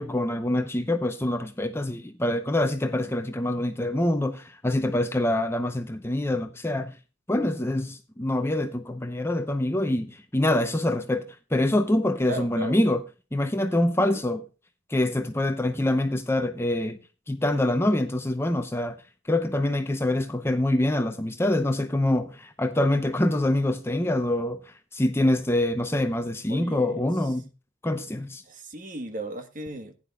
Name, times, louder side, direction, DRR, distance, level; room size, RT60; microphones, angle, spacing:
voice 1, 0.0-7.0 7.3-13.0 13.3-14.4 14.9-17.0 17.3-19.0 19.3-27.5 27.8-28.4, left 1 dB, 10° left, 0.7 m, -25 dB
voice 2, 12.3-12.8 14.0-14.2 26.5-27.3 28.4-30.0, right 1 dB, 40° right, 1.3 m, -36 dB
15.5 x 10.0 x 2.3 m
head